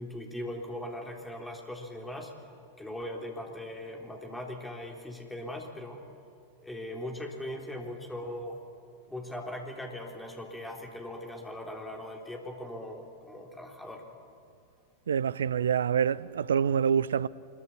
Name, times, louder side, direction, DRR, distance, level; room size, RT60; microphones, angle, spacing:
voice 1, 0.0-2.3 2.8-6.0 6.6-8.6 9.1-14.0, left 1 dB, 5° left, 3.6 m, -39 dB
voice 2, 15.1-17.3, right 7 dB, 65° right, 0.6 m, -26 dB
25.5 x 22.5 x 7.2 m
figure-of-eight pair, 90°, 0 cm